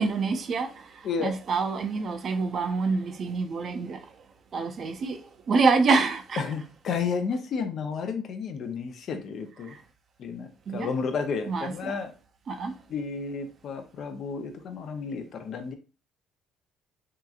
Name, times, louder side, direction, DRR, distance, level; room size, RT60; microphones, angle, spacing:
voice 1, 0.0-4.1 4.5-6.4 9.7-9.8 10.7-10.9 11.5-12.0 12.5-12.8, right 4 dB, 50° right, 0.4 m, -27 dB
voice 2, 6.4-9.7 10.2-12.1 12.9-15.7, left 5 dB, 60° left, 0.5 m, -32 dB
2.8 x 2.4 x 2.3 m
supercardioid pair, 80°, 0 cm